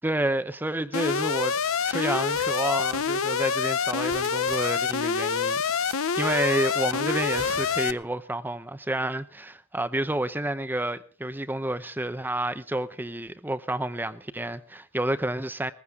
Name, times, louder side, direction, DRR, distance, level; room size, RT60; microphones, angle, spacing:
voice 1, 0.0-1.6 1.8-5.6 6.2-15.7, right 1 dB, 10° right, 0.7 m, -29 dB
Alarm, 0.9-7.9, left 6 dB, 70° left, 0.7 m, -26 dB
sound 1, 2.3-3.4 4.0-5.2 5.7-6.8 7.3-8.0, right 6 dB, 70° right, 2.7 m, -45 dB
20.0 x 15.5 x 3.6 m
head